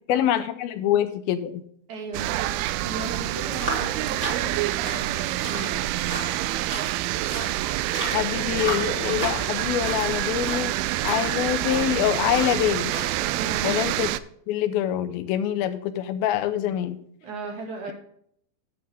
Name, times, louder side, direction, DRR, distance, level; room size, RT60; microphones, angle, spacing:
voice 1, 0.1-1.6 8.1-10.8 11.0-13.0 13.6-14.1 14.5-17.0, left 11 dB, 85° left, 10 dB, 2.6 m, -25 dB
voice 2, 1.9-2.5 2.8-5.8 13.4-13.7 17.2-17.9, right 3 dB, 55° right, 1 dB, 3.2 m, -36 dB
sound 1, 2.1-14.2, right 15 dB, 90° right, 2.5 m, -27 dB
sound 2, 3.5-13.5, right 1 dB, 20° right, 2.4 m, -36 dB
11.0 x 7.8 x 3.5 m, 0.67 s
omnidirectional pair, 4.3 m